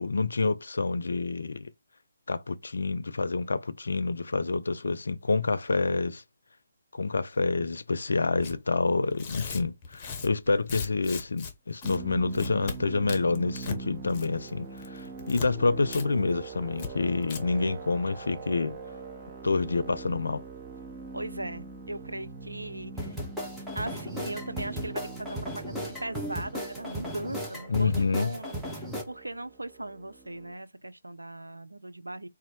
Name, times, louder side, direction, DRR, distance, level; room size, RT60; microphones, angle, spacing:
voice 1, 0.0-1.7 2.3-6.2 6.9-18.8 19.4-20.4 27.7-28.3, left 3 dB, 65° left, 0.5 m, -28 dB
Tearing, 8.4-8.6 9.1-11.5 11.8-12.0 12.3-12.8 13.1-13.8 14.1-14.5 14.8-15.5 15.9-16.0 16.3-16.4 16.8-16.9 17.2-17.4, left 5 dB, 25° left, 0.9 m, -38 dB
sound 1, 11.8-30.5, right 4 dB, 25° right, 0.7 m, -43 dB
voice 2, 21.1-23.2 23.4-32.3, right 1 dB, 85° right, 0.5 m, -39 dB
sound 2, 23.0-29.0, equal, ahead, 0.9 m, -36 dB
4.1 x 2.4 x 4.4 m
figure-of-eight pair, 145°, 0 cm